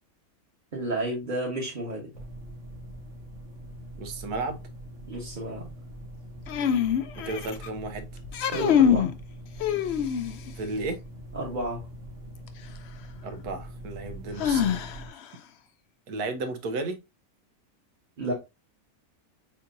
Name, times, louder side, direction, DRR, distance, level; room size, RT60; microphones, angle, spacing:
voice 1, 0.7-2.1 5.1-5.7 8.5-9.1 11.3-11.9 18.2-18.3, right 1 dB, 35° right, 1.2 m, -31 dB
sound 1, 2.1-15.1, right 1 dB, 55° right, 1.9 m, -43 dB
voice 2, 4.0-4.6 7.2-8.1 10.5-11.0 13.2-14.9 16.1-17.0, right 3 dB, 90° right, 1.3 m, -33 dB
sound 2, 6.5-7.7 8.2-9.1 9.6-10.5 12.5-12.6 14.4-15.2, left 8 dB, 65° left, 0.7 m, -24 dB
7.3 x 2.8 x 2.6 m
omnidirectional pair, 1.6 m